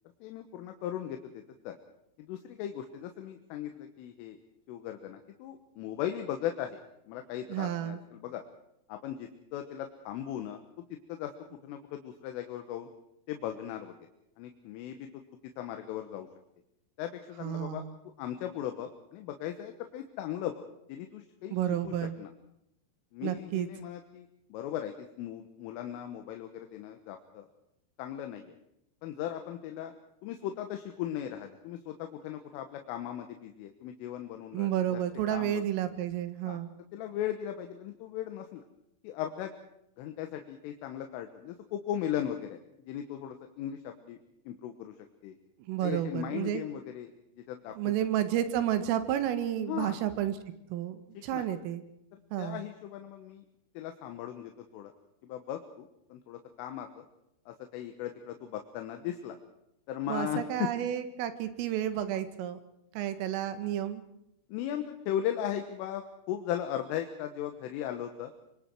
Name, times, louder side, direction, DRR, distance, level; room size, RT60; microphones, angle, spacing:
voice 1, 0.2-1.8 2.2-4.4 4.7-6.8 7.1-8.4 8.9-10.6 11.1-11.3 11.6-12.9 13.3-14.0 14.4-15.1 15.6-16.3 17.0-17.8 18.2-20.6 20.9-21.6 21.8-22.3 23.1-27.5 28.0-28.5 29.0-29.9 30.2-35.0 35.3-35.6 36.5-36.6 36.9-38.6 39.0-39.5 40.0-42.6 42.9-44.2 44.5-44.9 45.2-45.4 45.8-47.1 47.4-47.9 49.7-50.0 51.3-51.5 52.4-53.4 53.8-54.9 55.3-57.0 57.5-59.4 59.9-60.7 64.5-68.3, left 11 dB, 85° left, 6 dB, 3.8 m, -37 dB
voice 2, 7.5-8.0 17.4-18.0 21.5-22.2 23.2-23.7 34.5-36.7 45.7-46.6 47.8-50.3 50.7-51.8 52.3-52.6 60.1-62.6 63.0-64.0, right 11 dB, 85° right, 10 dB, 4.2 m, -31 dB
26.0 x 24.0 x 4.7 m, 0.80 s
omnidirectional pair, 5.7 m